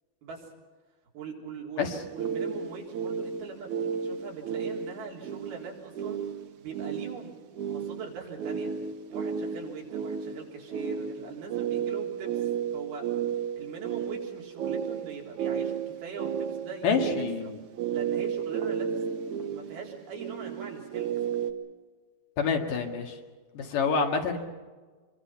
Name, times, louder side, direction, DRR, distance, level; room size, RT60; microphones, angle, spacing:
voice 1, 1.1-6.2 6.6-7.4 7.7-8.7 9.1-13.1 13.5-17.5 17.9-19.0 19.5-21.3, right 5 dB, 90° right, -2 dB, 5.6 m, -42 dB
sound 1, 1.9-21.5, right 7 dB, 65° right, 2.5 m, -33 dB
voice 2, 16.8-17.6 22.4-23.1 23.5-24.4, left 5 dB, 65° left, 3 dB, 3.4 m, -27 dB
26.5 x 23.0 x 5.8 m, 1.4 s
omnidirectional pair, 4.3 m